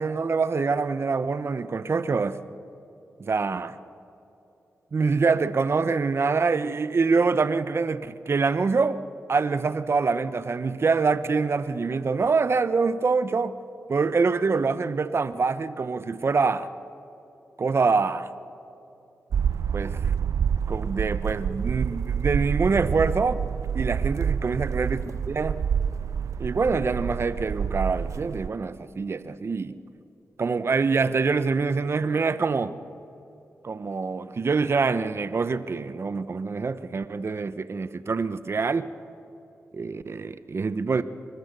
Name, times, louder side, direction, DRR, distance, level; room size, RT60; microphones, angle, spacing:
voice 1, 0.0-2.4 3.2-3.7 4.9-9.0 9.3-13.6 13.9-16.7 17.6-18.3 19.7-20.1 20.7-23.4 23.7-25.6 26.4-29.8 30.4-32.7 33.6-38.9 39.7-41.0, right 4 dB, 55° right, 0.9 m, -25 dB
sound 1, 19.3-28.5, right 7 dB, 75° right, 0.4 m, -28 dB
28.0 x 14.5 x 6.8 m
cardioid pair, 55°, 5 cm